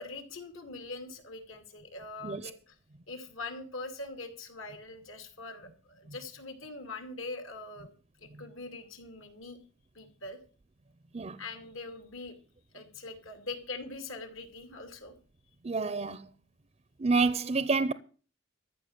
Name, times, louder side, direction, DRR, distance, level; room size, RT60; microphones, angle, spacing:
voice 1, 0.0-2.7 3.1-7.9 8.2-9.6 9.9-10.4 11.4-12.4 12.7-15.1, left 3 dB, 75° left, 2.5 m, -42 dB
voice 2, 15.6-16.3 17.0-17.9, right 4 dB, 30° right, 0.5 m, -28 dB
14.0 x 6.1 x 8.6 m
head